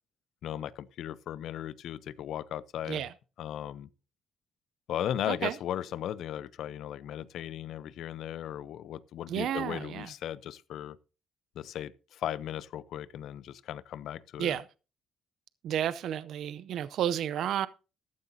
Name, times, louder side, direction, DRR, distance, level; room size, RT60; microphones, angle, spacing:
voice 1, 0.4-3.0 3.4-3.9 4.9-11.0 11.6-14.6, left 11 dB, 75° left, 0.6 m, -37 dB
voice 2, 9.3-10.1 14.4-14.7 15.6-17.7, right 10 dB, 75° right, 0.5 m, -31 dB
14.0 x 12.0 x 2.7 m
cardioid pair, 90°, 0 cm